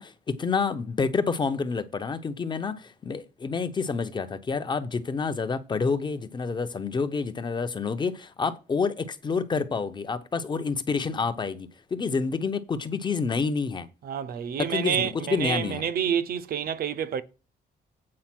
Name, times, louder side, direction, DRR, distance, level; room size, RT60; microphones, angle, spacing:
voice 1, 0.0-13.9 14.6-15.8, left 5 dB, 25° left, 0.7 m, -28 dB
voice 2, 14.0-17.2, right 8 dB, 60° right, 0.8 m, -28 dB
8.6 x 5.2 x 6.0 m
cardioid pair, 170°, 17 cm